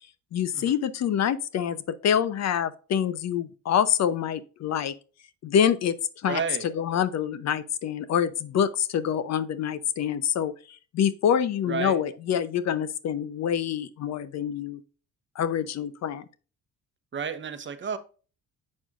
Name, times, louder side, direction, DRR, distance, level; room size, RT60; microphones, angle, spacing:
voice 1, 0.3-4.9 5.4-6.0 6.2-6.4 6.8-10.5 10.9-14.8 15.4-16.2, left 9 dB, 55° left, 0.7 m, -26 dB
voice 2, 6.2-6.7 11.7-12.0 17.1-18.0, right 6 dB, 35° right, 1.0 m, -31 dB
7.4 x 6.1 x 2.5 m
cardioid pair, 95°, 32 cm